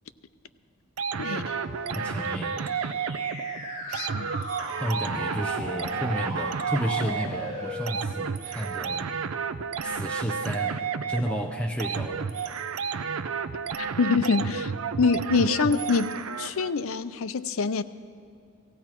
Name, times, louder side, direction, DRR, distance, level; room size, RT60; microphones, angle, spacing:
sound 1, 1.0-16.7, right 6 dB, 75° right, 0.5 m, -32 dB
voice 1, 1.2-1.6 3.9-4.3 13.8-14.7 15.0-17.8, left 4 dB, 70° left, 13 dB, 0.5 m, -25 dB
sound 2, 1.3-7.9, right 1 dB, 50° right, 5.1 m, -37 dB
voice 2, 1.9-2.7 4.8-9.1 9.8-12.3, equal, 5° left, 1 dB, 0.5 m, -32 dB
18.0 x 16.0 x 4.5 m, 2.4 s
head